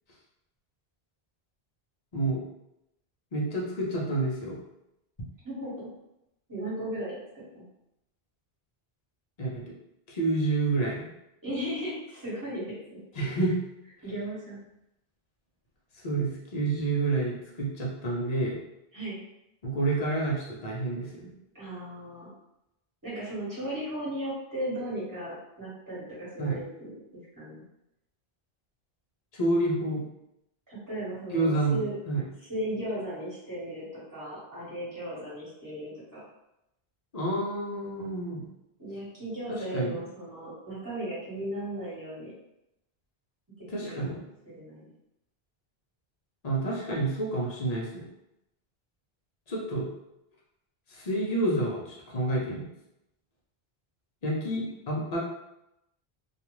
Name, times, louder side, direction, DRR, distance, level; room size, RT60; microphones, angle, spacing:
voice 1, 2.1-2.4 3.3-4.6 9.4-9.7 10.1-11.1 13.2-13.6 16.0-18.6 19.6-21.3 26.4-26.6 29.3-30.0 31.3-31.8 32.1-32.2 37.1-38.5 39.5-40.0 43.7-44.2 46.4-48.1 49.5-49.9 50.9-52.7 54.2-55.2, right 2 dB, 45° left, -3 dB, 0.7 m, -29 dB
voice 2, 5.4-5.9 6.5-7.7 11.4-13.0 14.0-14.6 18.9-19.2 21.5-22.3 23.0-27.6 30.7-31.9 32.5-36.2 38.8-42.3 43.8-44.9, right 1 dB, 20° right, -9 dB, 1.3 m, -36 dB
2.4 x 2.3 x 3.0 m, 0.86 s
omnidirectional pair, 1.0 m